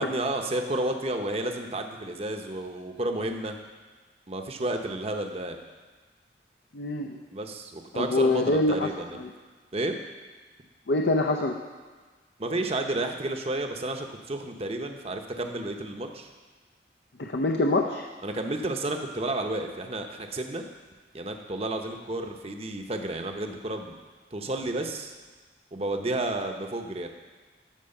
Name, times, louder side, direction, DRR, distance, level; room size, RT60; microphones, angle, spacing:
voice 1, 0.0-3.6 4.3-5.6 7.3-9.2 9.7-10.0 12.4-16.3 18.2-20.6 21.1-24.0 24.3-25.1 25.7-27.1, right 2 dB, 35° right, 4 dB, 0.8 m, -31 dB
voice 2, 6.7-7.2 8.0-8.9 10.9-11.5 17.2-18.0, left 2 dB, 70° left, 3 dB, 0.6 m, -24 dB
13.0 x 4.7 x 6.5 m, 1.4 s
head